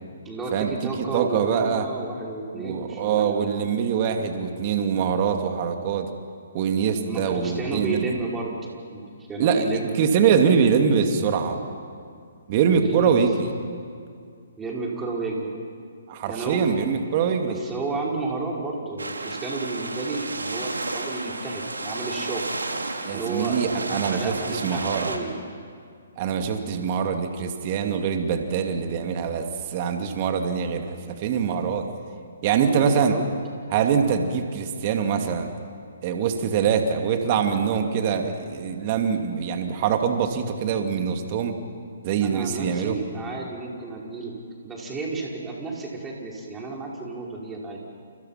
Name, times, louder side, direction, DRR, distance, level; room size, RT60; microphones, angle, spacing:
voice 1, 0.2-3.5 7.0-8.6 8.9-9.0 9.3-9.9 12.8-13.2 14.6-15.5 16.3-16.8 17.4-22.5 23.1-23.6 24.1-25.3 32.6-33.2 42.2-44.4 44.6-47.8, right 3 dB, 10° right, -2 dB, 5.5 m, -31 dB
voice 2, 1.0-1.9 2.5-6.1 6.5-8.1 9.4-9.6 10.0-11.6 12.5-13.5 16.1-17.6 23.0-25.1 26.2-31.9 32.4-33.2 33.7-35.5 36.0-41.6 42.0-43.0, right 7 dB, 35° right, 5 dB, 2.7 m, -24 dB
sound 1, 19.0-25.2, right 2 dB, 85° right, 3.2 m, -32 dB
29.5 x 29.0 x 6.0 m, 2.3 s
figure-of-eight pair, 135°, 0 cm